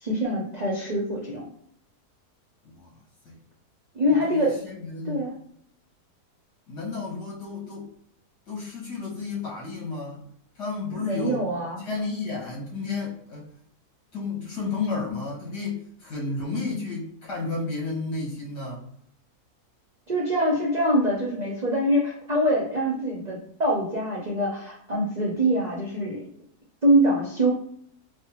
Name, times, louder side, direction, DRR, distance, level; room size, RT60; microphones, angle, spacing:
voice 1, 0.0-1.5 3.9-4.6 5.0-5.3 10.9-11.9 20.1-26.2 26.8-27.5, equal, 60° right, -3 dB, 0.4 m, -24 dB
voice 2, 4.1-5.3 6.7-7.9 8.5-10.2 10.6-11.4 11.8-13.5 14.1-18.8, left 4 dB, 80° left, -5 dB, 2.1 m, -32 dB
4.3 x 2.0 x 2.9 m, 0.68 s
omnidirectional pair, 1.7 m